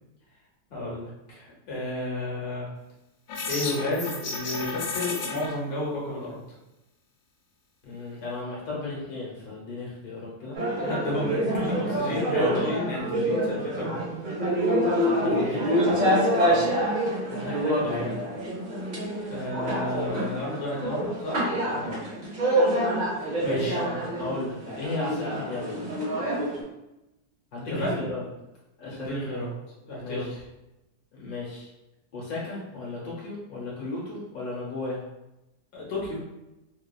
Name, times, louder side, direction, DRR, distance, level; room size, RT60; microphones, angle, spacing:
voice 1, 0.7-2.7 3.5-6.4 10.8-14.0 16.4-16.7 17.8-18.1 19.3-21.4 23.4-23.8 27.6-28.0 28.9-29.5 29.9-30.4 35.7-36.2, left 1 dB, 50° left, -5 dB, 0.8 m, -32 dB
sound 1, 3.3-5.5, left 3 dB, 85° left, 1.2 m, -32 dB
voice 2, 7.8-10.6 14.8-15.7 17.3-18.1 21.7-22.0 23.4-25.8 27.5-28.3 28.8-29.3 30.0-30.3 31.1-31.7 32.1-35.0, left 2 dB, 70° left, -5 dB, 1.3 m, -35 dB
sound 2, 10.5-26.6, right 1 dB, 70° right, 0.4 m, -26 dB
2.9 x 2.3 x 2.3 m, 0.94 s
omnidirectional pair, 1.7 m